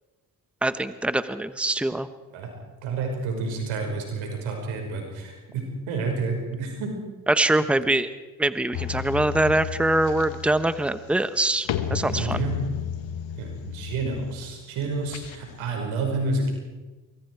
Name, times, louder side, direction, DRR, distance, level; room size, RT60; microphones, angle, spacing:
voice 1, 0.6-2.1 7.3-8.1 8.4-12.4, right 2 dB, ahead, 12 dB, 1.1 m, -23 dB
voice 2, 2.8-6.9 12.1-12.7 13.4-16.5, right 3 dB, 90° right, 2 dB, 5.6 m, -29 dB
sound 1, 8.7-15.7, left 9 dB, 75° left, 1.6 m, -33 dB
25.0 x 23.0 x 4.8 m, 1.2 s
supercardioid pair, 55°, 46 cm